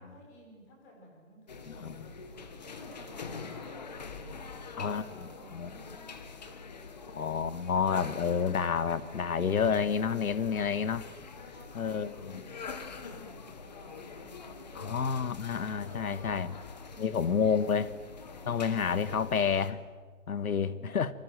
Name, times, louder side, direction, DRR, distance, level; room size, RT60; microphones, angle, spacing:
voice 1, 0.0-1.9 2.6-6.1 6.9-7.1 11.3-15.1 15.7-16.4 16.9-17.9 20.4-21.0, left 1 dB, 15° left, 0 dB, 4.4 m, -54 dB
sound 1, 1.5-19.7, left 4 dB, 30° left, 1.5 m, -45 dB
voice 2, 1.7-2.1 4.8-5.7 7.1-11.0 11.7-12.4 14.7-16.5 17.0-17.9 18.5-19.8 20.3-21.1, left 6 dB, 75° left, 15 dB, 1.6 m, -29 dB
26.5 x 23.5 x 7.7 m, 1.5 s
hypercardioid pair, 180°, 43 cm